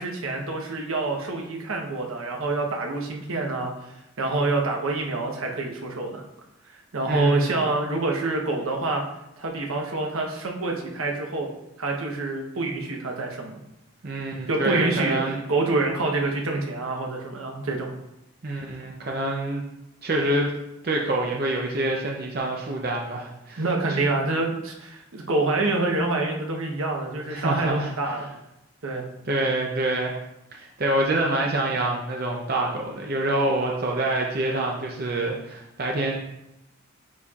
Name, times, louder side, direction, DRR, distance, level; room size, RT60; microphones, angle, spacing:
voice 1, 0.0-3.7 4.2-6.2 6.9-9.0 9.4-11.5 11.8-13.6 14.5-15.2 15.5-17.9 23.6-28.3 28.8-29.0, right 2 dB, 80° right, 1 dB, 1.0 m, -26 dB
voice 2, 7.1-7.5 14.0-15.4 18.4-19.6 20.0-20.5 20.8-23.6 23.9-24.0 27.3-28.2 29.2-30.2 30.6-36.2, right 1 dB, 45° right, -1 dB, 0.6 m, -26 dB
9.6 x 4.2 x 2.4 m, 0.88 s
head